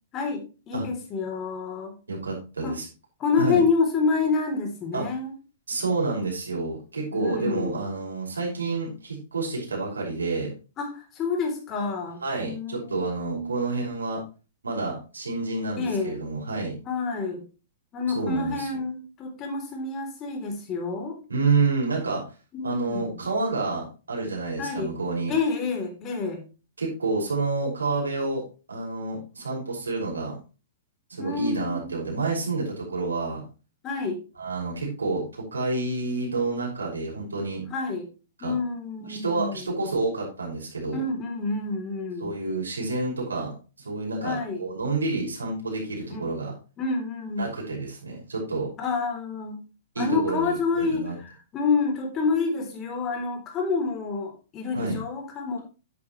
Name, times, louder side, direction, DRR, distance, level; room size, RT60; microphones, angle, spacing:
voice 1, 0.1-2.0 2.6-2.8 3.2-5.3 7.1-7.8 10.8-13.6 15.8-16.2 16.9-17.4 17.9-21.2 22.5-23.2 24.6-24.9 25.3-26.4 31.2-32.0 33.8-34.2 37.7-38.1 38.4-39.7 40.9-42.3 44.2-44.6 46.1-46.3 46.8-47.5 48.8-49.6 50.0-55.6, left 4 dB, 30° left, 3 dB, 3.4 m, -28 dB
voice 2, 2.1-2.9 3.4-3.6 4.9-5.0 5.7-10.5 12.2-14.2 14.6-16.8 18.1-18.7 21.3-22.2 22.6-25.3 26.8-28.4 28.7-30.4 31.1-33.4 34.4-37.7 38.4-38.5 39.1-41.0 42.2-46.5 47.4-48.7 49.9-51.1 54.7-55.0, right 3 dB, 90° right, -2 dB, 5.9 m, -29 dB
10.5 x 8.8 x 3.2 m, 0.32 s
hypercardioid pair, 115°, 0 cm